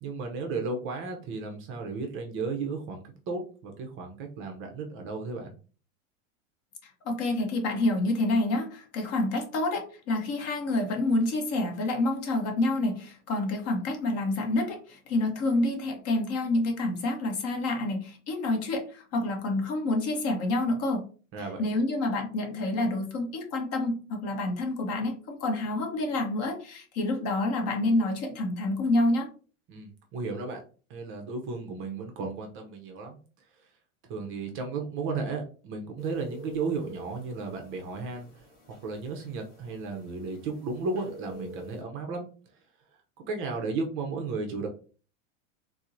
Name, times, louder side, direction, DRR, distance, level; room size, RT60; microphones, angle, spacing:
voice 1, 0.0-5.5 21.3-21.6 29.7-30.6 30.9-33.2 33.6-33.7 34.1-38.4 38.8-42.3 43.3-44.7, right 4 dB, 35° right, 3 dB, 0.5 m, -34 dB
voice 2, 7.0-21.0 21.6-29.3, left 2 dB, 40° left, 3 dB, 0.8 m, -28 dB
sound 1, 36.0-41.8, equal, 20° left, 1.2 m, -47 dB
4.2 x 2.0 x 2.5 m, 0.38 s
supercardioid pair, 145°, 39 cm